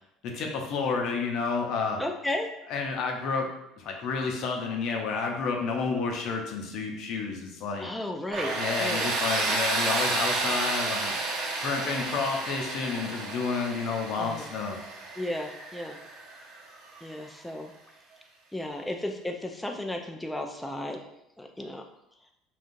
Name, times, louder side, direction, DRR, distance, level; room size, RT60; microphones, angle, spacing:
voice 1, 0.2-2.0 2.7-3.5 3.8-7.9 8.6-11.1 11.5-14.8, left 4 dB, 65° left, 1 dB, 0.6 m, -30 dB
voice 2, 2.0-2.5 7.8-9.1 14.2-14.5 15.2-16.0 17.0-17.7 18.5-21.0 21.4-21.8, left 1 dB, 5° left, 2 dB, 0.3 m, -34 dB
Tools, 8.3-17.1, right 3 dB, 65° right, 0.7 m, -31 dB
3.6 x 2.3 x 2.6 m, 0.82 s
supercardioid pair, 85°, 0 cm